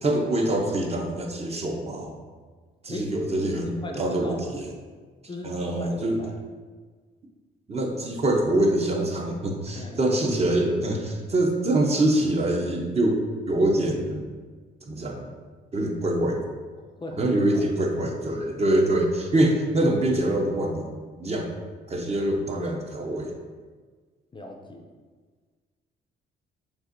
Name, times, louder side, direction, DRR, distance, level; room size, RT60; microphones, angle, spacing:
voice 1, 0.0-2.2 2.8-4.7 5.4-6.2 7.7-13.2 13.5-14.3 14.8-15.3 15.7-16.4 17.2-21.5 21.9-23.3, right 1 dB, 30° right, 1 dB, 0.7 m, -24 dB
voice 2, 2.9-4.5 5.3-6.3 9.7-10.0 17.0-17.3 17.5-17.7 24.3-24.8, left 1 dB, 25° left, 2 dB, 0.5 m, -38 dB
6.4 x 2.5 x 2.6 m, 1.5 s
cardioid pair, 90°, 20 cm